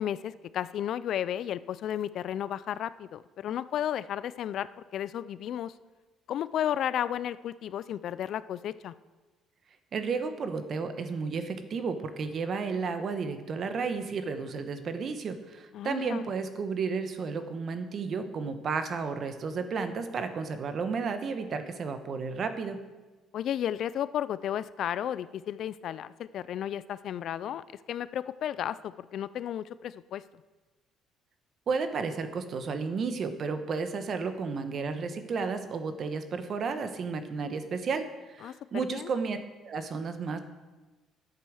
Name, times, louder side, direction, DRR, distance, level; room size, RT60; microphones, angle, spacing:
voice 1, 0.0-5.7 6.3-8.9 15.7-16.2 23.3-30.2 38.4-39.1, left 10 dB, 60° left, 16 dB, 0.4 m, -33 dB
voice 2, 9.9-22.8 31.7-38.1 38.4-39.4 39.6-40.4, right 5 dB, 50° right, 9 dB, 1.1 m, -32 dB
10.5 x 8.5 x 6.3 m, 1.2 s
cardioid pair, 100°, 0 cm